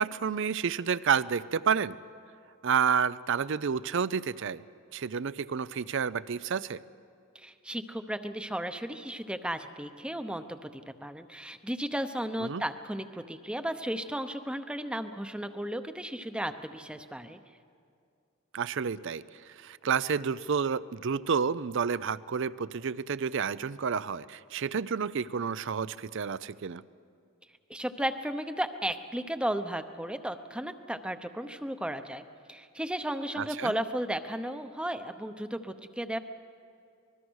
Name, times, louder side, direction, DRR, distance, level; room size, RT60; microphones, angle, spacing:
voice 1, 0.0-2.0 2.6-4.6 4.9-6.8 12.4-12.6 18.5-19.2 19.6-26.8 33.4-33.7, right 6 dB, 65° right, 18 dB, 0.5 m, -30 dB
voice 2, 7.3-17.4 27.7-32.2 32.5-36.2, right 1 dB, 5° right, 9 dB, 0.8 m, -34 dB
25.0 x 21.0 x 6.3 m, 2.4 s
head